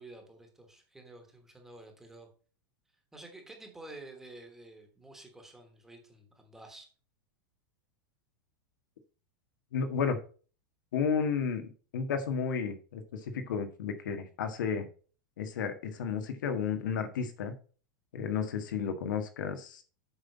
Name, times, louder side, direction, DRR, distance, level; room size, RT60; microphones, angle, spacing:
voice 1, 0.0-2.3 3.1-6.9, right 2 dB, 5° right, 3 dB, 1.2 m, -50 dB
voice 2, 9.7-10.2 10.9-14.9 15.4-17.5 18.1-19.8, left 6 dB, 90° left, 7 dB, 1.6 m, -32 dB
8.0 x 5.5 x 4.1 m, 0.38 s
supercardioid pair, 175°, 10 cm